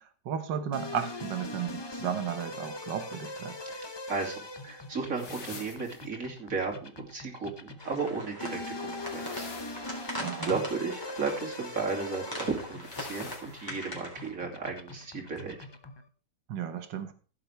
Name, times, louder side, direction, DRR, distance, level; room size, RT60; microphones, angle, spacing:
voice 1, 0.3-3.6 10.2-10.6 16.5-17.1, right 8 dB, 85° right, 10 dB, 1.8 m, -34 dB
sound 1, 0.7-16.1, left 2 dB, 35° left, 0.4 m, -42 dB
voice 2, 3.7-9.5 10.4-15.6, right 4 dB, 50° right, 0 dB, 3.0 m, -34 dB
sound 2, 5.2-6.1 9.0-10.3 12.8-13.7, left 4 dB, 70° left, 2.3 m, -46 dB
sound 3, 7.8-14.3, left 1 dB, 10° left, 3.7 m, -41 dB
15.5 x 7.7 x 3.4 m, 0.38 s
omnidirectional pair, 1.9 m